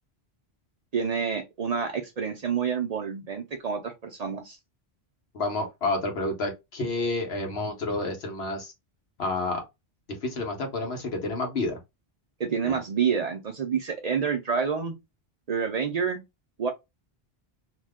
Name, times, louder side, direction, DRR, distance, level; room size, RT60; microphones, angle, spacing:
voice 1, 0.9-4.6 12.4-14.9 15.5-16.2 16.6-16.7, right 6 dB, 50° right, 0.5 m, -28 dB
voice 2, 5.3-8.7 9.2-9.6 10.2-11.8 12.6-12.8, left 2 dB, 85° left, 1.2 m, -29 dB
2.7 x 2.2 x 3.4 m
omnidirectional pair, 1.0 m